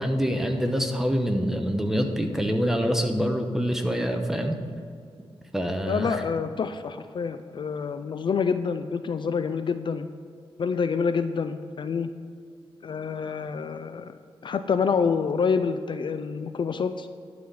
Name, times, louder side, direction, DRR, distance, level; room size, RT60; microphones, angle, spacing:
voice 1, 0.0-4.6 5.5-6.2, equal, 5° right, 4 dB, 1.0 m, -25 dB
voice 2, 5.9-10.1 10.6-12.1 12.8-14.2 14.4-17.1, left 6 dB, 55° left, 10 dB, 0.4 m, -27 dB
11.0 x 4.2 x 7.7 m, 2.3 s
wide cardioid pair, 110°, 10 cm